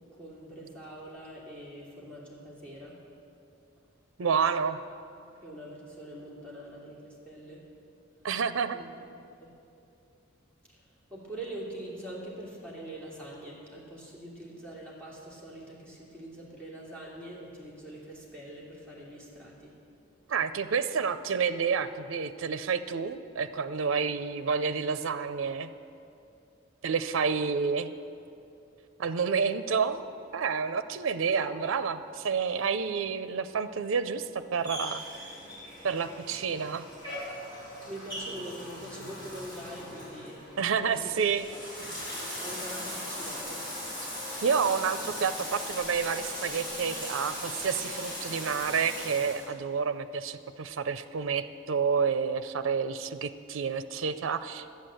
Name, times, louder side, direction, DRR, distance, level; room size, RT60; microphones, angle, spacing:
voice 1, 0.1-3.0 5.1-7.6 8.7-8.9 9.4-9.5 10.7-19.7 31.3-31.6 37.9-41.1 41.5-41.6 42.4-43.7, right 1 dB, 5° left, -6 dB, 2.7 m, -44 dB
voice 2, 4.2-4.8 8.2-8.8 20.3-25.7 26.8-27.9 29.0-30.0 30.3-35.0 35.8-36.8 40.6-41.5 44.0-44.1 44.4-54.7, right 6 dB, 85° right, 12 dB, 0.5 m, -29 dB
Bathtub (filling or washing), 34.6-49.5, left 1 dB, 25° left, 3.6 m, -39 dB
12.0 x 8.3 x 7.6 m, 2.7 s
head